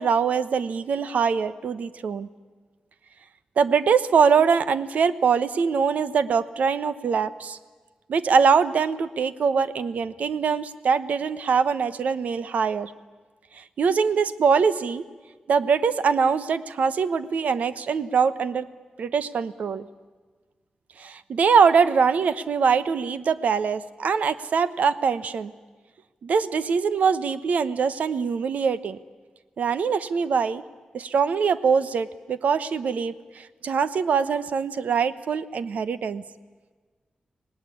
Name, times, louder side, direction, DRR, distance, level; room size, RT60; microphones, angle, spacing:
voice 1, 0.0-2.3 3.6-7.6 8.1-12.9 13.5-15.0 15.5-18.7 19.0-19.8 21.0-25.5 26.2-29.0 29.6-30.6 30.9-36.2, right 6 dB, 75° right, 14 dB, 0.9 m, -23 dB
25.0 x 19.0 x 9.9 m, 1.4 s
wide cardioid pair, 165°, 3 cm